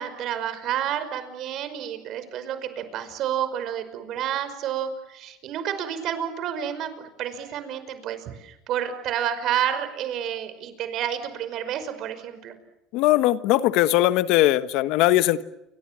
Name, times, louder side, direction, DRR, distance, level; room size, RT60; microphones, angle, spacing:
voice 1, 0.0-12.6, right 10 dB, 60° right, 10 dB, 5.4 m, -30 dB
voice 2, 12.9-15.4, left 15 dB, 70° left, 12 dB, 1.4 m, -20 dB
29.5 x 25.5 x 7.6 m, 0.87 s
supercardioid pair, 110°, 0 cm